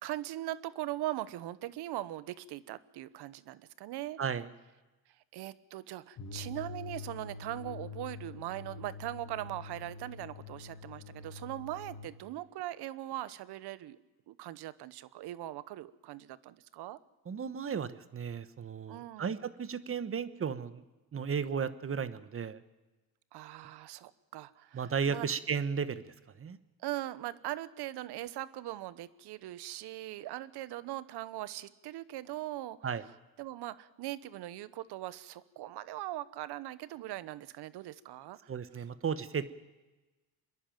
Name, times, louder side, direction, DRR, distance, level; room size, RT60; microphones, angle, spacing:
voice 1, 0.0-4.2 5.3-14.0 14.3-17.0 18.9-19.3 23.3-25.3 26.8-32.8 33.4-38.5, right 14 dB, 65° right, 17 dB, 1.0 m, -40 dB
sound 1, 6.2-12.1, left 4 dB, 45° left, 2.6 m, -45 dB
voice 2, 17.3-20.8 21.1-22.6 24.7-26.6 32.8-33.0 38.5-39.5, right 6 dB, 30° right, 14 dB, 1.2 m, -34 dB
26.0 x 11.0 x 9.2 m, 1.2 s
supercardioid pair, 95°, 43 cm